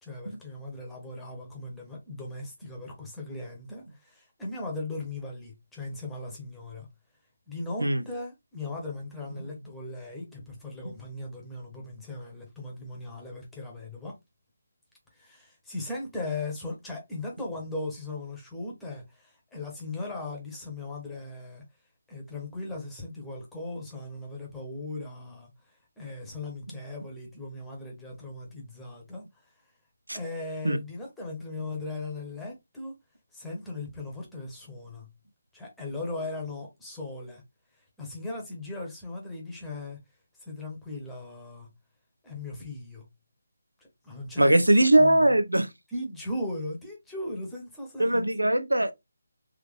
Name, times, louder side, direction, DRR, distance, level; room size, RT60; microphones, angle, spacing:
voice 1, 0.0-6.9 7.5-14.1 15.1-21.6 22.1-25.5 26.0-29.2 30.1-32.9 33.3-35.1 35.5-37.4 38.0-40.0 40.4-41.7 42.2-43.1 43.8-45.3 45.9-48.3, left 2 dB, 5° left, 1.1 m, -38 dB
voice 2, 44.4-45.7 48.0-48.9, right 1 dB, 75° right, 0.6 m, -21 dB
3.8 x 3.2 x 3.2 m
figure-of-eight pair, 150°, 0 cm